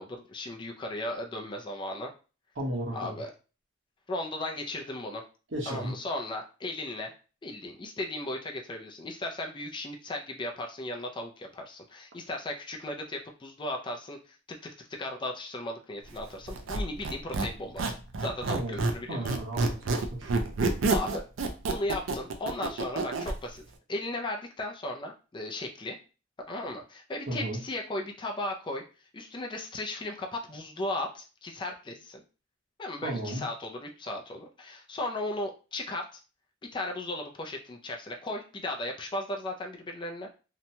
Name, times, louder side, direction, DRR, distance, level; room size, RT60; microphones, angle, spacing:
voice 1, 0.0-2.1 2.9-3.3 4.1-5.2 5.7-7.1 7.4-14.4 14.6-19.4 20.9-21.2 21.6-23.6 23.9-26.0 26.5-28.8 29.1-32.2 32.8-36.2 36.7-40.3, left 1 dB, 25° left, 2 dB, 0.4 m, -36 dB
voice 2, 2.6-3.2 5.5-5.9 18.5-20.3 27.3-27.6 33.0-33.4, right 1 dB, 70° right, -1 dB, 1.0 m, -34 dB
Squeak, 16.5-19.0 19.2-23.4, right 3 dB, 90° right, 0.4 m, -29 dB
2.8 x 2.2 x 2.7 m, 0.34 s
head